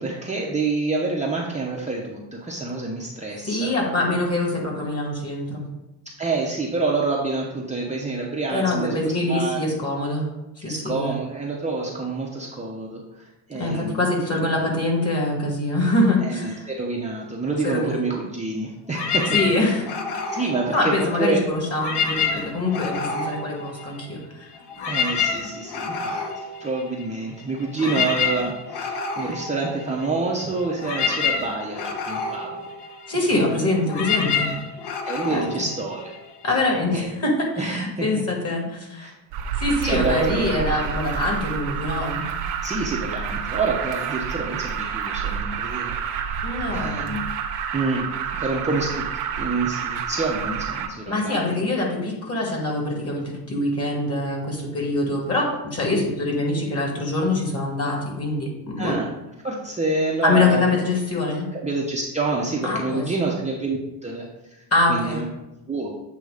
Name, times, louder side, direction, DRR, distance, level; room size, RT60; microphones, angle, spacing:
voice 1, 0.0-3.7 6.2-9.6 10.6-14.1 16.2-19.8 20.3-21.4 24.9-32.7 33.3-33.7 35.1-36.1 36.9-37.1 37.6-38.1 39.0-39.1 39.8-40.6 42.6-46.0 46.7-47.2 47.7-48.1 48.4-49.1 49.4-51.4 58.8-59.1 59.4-60.6 61.6-65.2 65.7-65.9, right 3 dB, 15° right, -3 dB, 0.8 m, -27 dB
voice 2, 3.4-5.6 8.5-10.3 10.6-11.1 13.6-16.7 17.6-18.0 19.3-19.9 20.7-24.5 27.9-28.0 33.1-34.5 35.3-35.4 36.4-39.1 39.6-42.2 46.4-47.2 51.1-59.0 60.2-61.5 62.6-63.0 64.7-65.2, left 2 dB, 30° left, -1 dB, 2.1 m, -24 dB
sound 1, 18.9-21.3 21.7-24.2 24.5-36.5, left 5 dB, 55° left, 1.1 m, -28 dB
Alarm, 39.3-50.9, right 7 dB, 80° right, 0.9 m, -29 dB
8.1 x 3.0 x 4.9 m, 0.97 s
cardioid pair, 110°, 49 cm